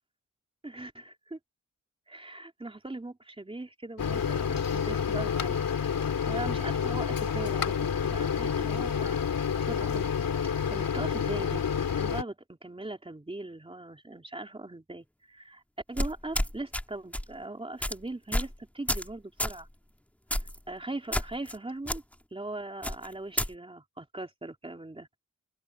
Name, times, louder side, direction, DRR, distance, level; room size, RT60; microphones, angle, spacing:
voice 1, 0.6-1.4 2.1-5.7 6.2-7.8 8.1-9.2 9.6-10.1 10.5-11.6 12.0-15.6 15.9-19.7 20.7-22.0 22.3-25.2, right 2 dB, 15° right, 3.6 m, -40 dB
Microwave oven, 4.0-12.2, left 7 dB, 80° left, 2.6 m, -29 dB
sound 1, 16.0-16.8 17.1-17.3 17.8-18.0 18.3-18.5 18.9-19.1 19.4-19.6 20.3-20.6 21.1-21.6 21.9-22.0 22.8-23.5, equal, 5° left, 2.3 m, -30 dB
open air
wide cardioid pair, 165°, 34 cm